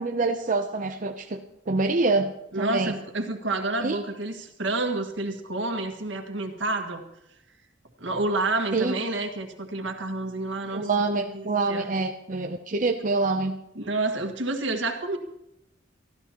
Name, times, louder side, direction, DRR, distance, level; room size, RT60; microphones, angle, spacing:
voice 1, 0.0-1.4 1.7-2.9 3.8-4.0 8.7-8.9 10.7-13.6, right 3 dB, 45° right, 4 dB, 0.7 m, -26 dB
voice 2, 2.5-7.0 8.0-10.9 11.3-11.9 13.8-15.2, right 2 dB, 80° right, 5 dB, 1.8 m, -29 dB
24.0 x 14.0 x 3.0 m, 0.85 s
head